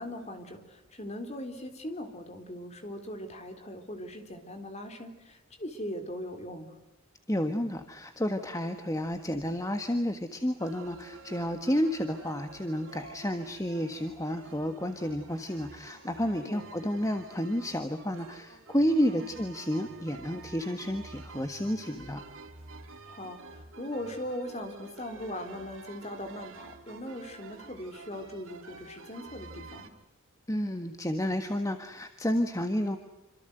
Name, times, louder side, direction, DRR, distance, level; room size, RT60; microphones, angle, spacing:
voice 1, 0.0-6.8 16.4-16.7 19.1-19.3 23.0-29.9, left 1 dB, 30° left, 6 dB, 3.8 m, -40 dB
voice 2, 7.3-22.2 30.5-33.0, equal, 15° left, 7 dB, 1.5 m, -31 dB
sound 1, 10.6-29.9, right 3 dB, 65° right, 3.2 m, -49 dB
27.5 x 26.0 x 8.0 m, 0.92 s
head